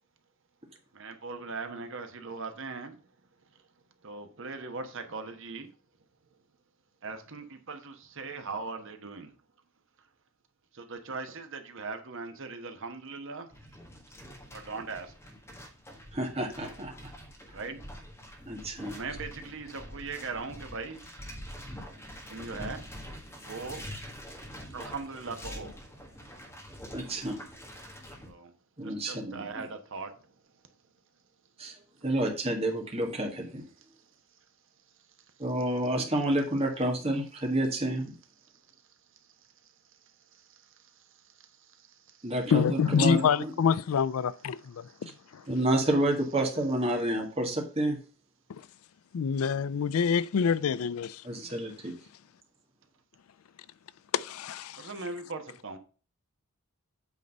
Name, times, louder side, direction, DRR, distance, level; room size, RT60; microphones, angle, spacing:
voice 1, 0.9-3.0 3.5-3.6 4.0-5.7 7.0-9.3 10.7-13.5 14.5-15.3 17.5-17.8 18.9-21.1 21.9-22.9 23.4-24.3 24.7-26.3 28.2-28.5 28.8-30.3 33.8-33.9 38.4-38.6 39.1-42.3 44.8-45.0 45.4-45.6 46.3-46.5 54.7-55.8, right 4 dB, 60° right, 1.1 m, -41 dB
sound 1, 13.5-28.3, equal, 10° left, 1.6 m, -45 dB
voice 2, 16.1-17.1 18.5-19.0 26.9-27.4 28.8-29.4 31.6-31.7 32.0-33.6 35.4-38.1 42.2-43.5 45.5-48.0 51.2-51.9, right 1 dB, 25° right, 1.7 m, -29 dB
voice 3, 42.5-45.4 48.5-48.6 49.1-51.2 54.1-54.9, left 6 dB, 75° left, 0.4 m, -27 dB
8.4 x 3.9 x 5.3 m
head